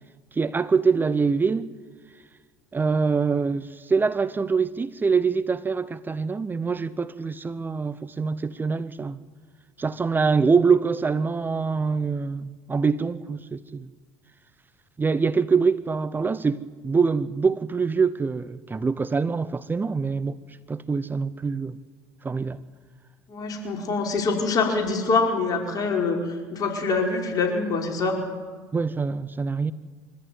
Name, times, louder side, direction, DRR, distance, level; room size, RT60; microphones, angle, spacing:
voice 1, 0.3-1.7 2.7-9.2 9.8-13.9 15.0-20.4 20.7-21.8 22.2-22.6 28.7-29.7, right 5 dB, 20° right, 0.8 m, -24 dB
voice 2, 23.3-28.2, left 4 dB, 40° left, 5.1 m, -25 dB
24.5 x 14.0 x 9.5 m
hypercardioid pair, 85°, 10 cm